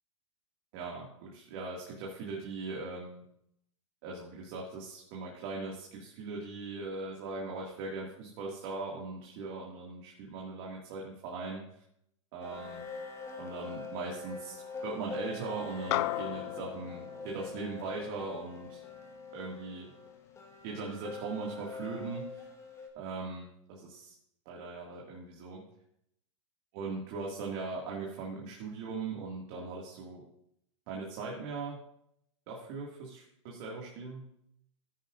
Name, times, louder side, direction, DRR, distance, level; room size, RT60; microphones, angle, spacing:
voice 1, 0.7-3.2 4.0-11.8 12.3-12.8 13.4-18.8 19.3-19.9 20.6-22.5 22.9-24.1 24.5-25.6 26.7-30.2 30.9-31.8 32.5-34.3, right 3 dB, 50° right, -2 dB, 2.1 m, -40 dB
sound 1, 12.4-22.9, left 4 dB, 15° left, 1.4 m, -44 dB
sound 2, 15.9-20.5, left 16 dB, 55° left, 0.4 m, -38 dB
14.5 x 9.9 x 2.5 m, 0.75 s
hypercardioid pair, 120°, 17 cm